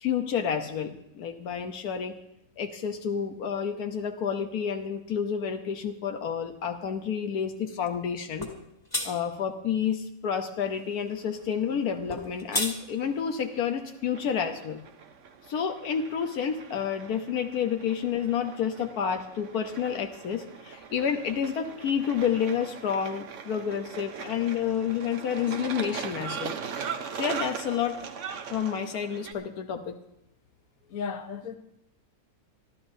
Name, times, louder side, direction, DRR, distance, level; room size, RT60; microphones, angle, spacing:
voice 1, 0.0-2.2 2.6-8.5 9.0-14.8 15.5-26.6 27.1-28.0 28.5-30.0, left 7 dB, 85° left, 1.4 m, -29 dB
sound 1, 8.4-8.6 8.9-9.1 12.1-12.8, left 1 dB, 15° left, 1.6 m, -29 dB
sound 2, 10.6-29.3, right 7 dB, 60° right, 1.2 m, -41 dB
voice 2, 30.9-31.5, left 6 dB, 65° left, 1.4 m, -34 dB
25.5 x 13.0 x 2.7 m
omnidirectional pair, 1.6 m